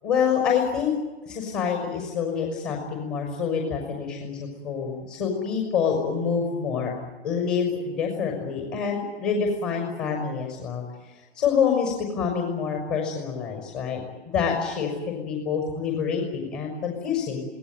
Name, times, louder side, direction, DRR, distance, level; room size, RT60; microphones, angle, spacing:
voice 1, 0.0-0.9 1.3-7.0 7.2-10.8 11.3-14.0 14.3-17.5, left 6 dB, 40° left, 1 dB, 6.0 m, -26 dB
26.5 x 18.0 x 9.3 m, 1.2 s
figure-of-eight pair, 105°, 33 cm